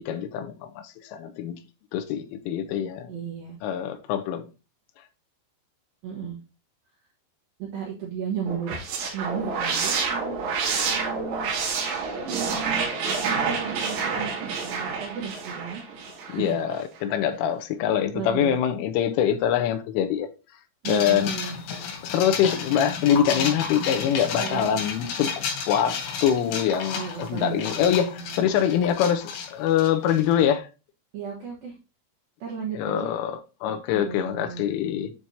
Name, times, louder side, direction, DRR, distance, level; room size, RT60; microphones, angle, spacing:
voice 1, 0.0-1.6 1.9-3.1 3.6-4.5 16.3-20.3 20.9-21.3 22.0-25.9 26.2-30.7 32.8-35.1, left 9 dB, 80° left, 3.1 m, -24 dB
voice 2, 3.1-3.6 6.0-6.4 7.6-8.8 9.1-11.5 12.0-12.8 13.2-15.8 16.1-16.6 17.3-17.4 18.1-18.6 20.8-21.6 24.4-24.7 26.9-28.4 31.1-31.8 32.4-33.2 33.9-34.6, right 7 dB, 80° right, 2.1 m, -35 dB
sound 1, 8.5-16.5, right 5 dB, 60° right, 3.6 m, -28 dB
sound 2, 20.8-30.4, left 6 dB, 65° left, 4.7 m, -32 dB
8.8 x 6.1 x 2.7 m
omnidirectional pair, 5.9 m